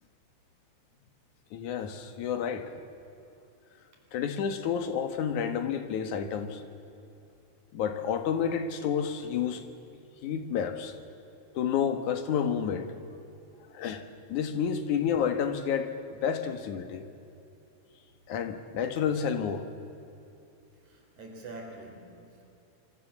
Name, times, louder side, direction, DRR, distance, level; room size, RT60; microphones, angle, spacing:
voice 1, 1.5-2.7 4.1-6.6 7.7-9.7 10.2-10.9 11.6-12.9 13.7-14.0 14.3-15.9 16.2-17.0 18.3-19.6, left 7 dB, 80° left, 8 dB, 3.0 m, -30 dB
voice 2, 20.8-22.5, right 2 dB, 75° right, 2 dB, 5.5 m, -45 dB
25.5 x 25.0 x 7.3 m, 2.8 s
omnidirectional pair, 3.4 m